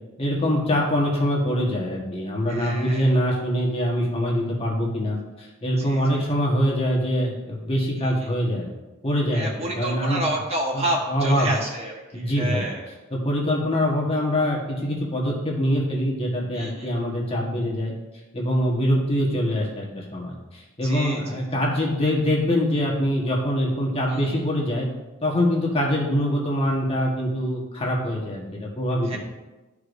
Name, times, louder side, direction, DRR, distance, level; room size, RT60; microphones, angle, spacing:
voice 1, 0.2-8.7 9.0-10.2 10.7-11.5 12.1-12.7 13.1-17.9 18.3-24.9 25.2-29.2, equal, 25° left, -3 dB, 1.4 m, -24 dB
voice 2, 2.5-3.1 5.8-6.2 8.0-8.3 9.3-12.9 16.5-16.9 20.8-21.4 24.1-24.4 29.0-29.2, right 1 dB, 30° right, -2 dB, 1.3 m, -30 dB
13.0 x 4.8 x 2.6 m, 1.1 s
head